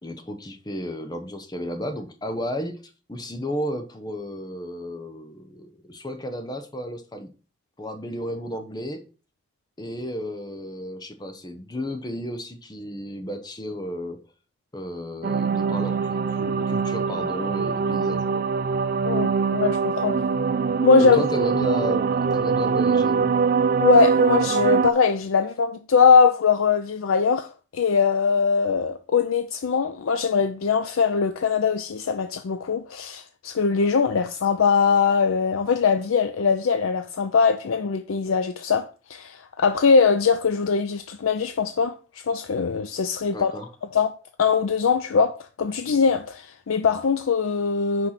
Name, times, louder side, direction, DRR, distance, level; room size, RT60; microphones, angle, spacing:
voice 1, 0.0-7.3 7.8-9.0 9.8-14.2 14.7-18.4 21.0-23.4 43.3-43.7, equal, 20° left, 0.8 m, -33 dB
sound 1, 15.2-24.9, right 5 dB, 45° right, 0.3 m, -23 dB
voice 2, 19.0-20.2 20.8-21.2 23.8-43.5 43.9-44.1 44.4-48.1, left 5 dB, 90° left, 0.5 m, -21 dB
6.2 x 4.7 x 5.8 m
head